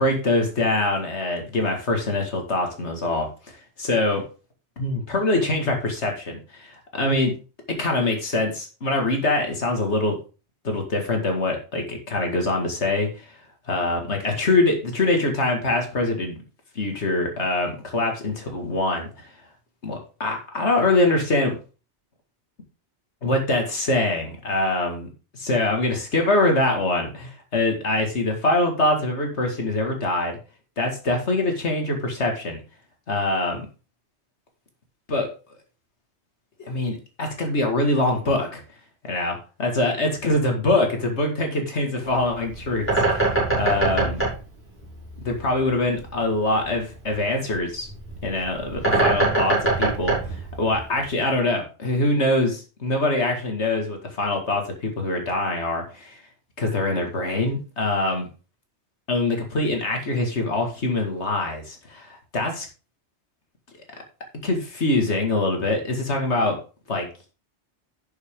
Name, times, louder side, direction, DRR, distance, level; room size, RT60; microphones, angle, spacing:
voice 1, 0.0-3.3 3.8-4.2 4.8-7.3 7.7-10.2 10.6-13.1 13.7-16.4 16.8-19.1 19.8-21.6 23.2-30.4 30.8-32.6 33.1-33.7 35.1-35.3 36.6-38.6 39.1-44.2 45.2-47.9 48.2-56.2 56.6-58.3 59.1-62.7 64.4-66.6 66.9-67.1, left 2 dB, 70° left, 3 dB, 2.4 m, -24 dB
Bird, 42.0-51.2, right 2 dB, 10° left, 5.6 m, -25 dB
11.5 x 6.5 x 3.7 m, 0.34 s
omnidirectional pair, 1.2 m